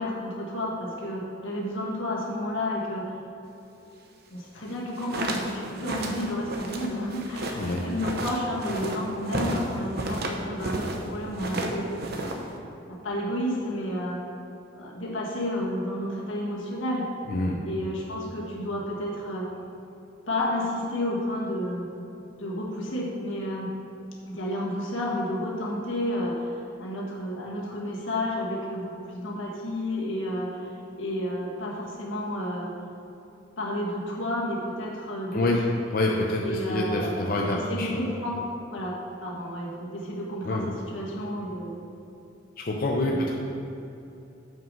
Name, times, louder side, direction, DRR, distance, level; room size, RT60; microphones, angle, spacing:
voice 1, 0.0-3.1 4.3-11.9 12.9-14.2 14.7-17.0 17.6-19.5 20.3-21.9 22.4-23.7 24.3-30.7 31.0-32.7 33.6-35.6 36.4-38.4 38.7-41.7 43.0-43.3, left 1 dB, 80° left, -3 dB, 1.7 m, -31 dB
sound 1, 4.8-11.0 11.3-12.6, right 1 dB, 55° right, 0.8 m, -32 dB
voice 2, 17.3-17.6 35.3-35.6 35.9-38.0 40.4-40.7 42.6-43.3, left 2 dB, 50° left, -1 dB, 0.6 m, -26 dB
7.3 x 6.2 x 5.3 m, 2.9 s
head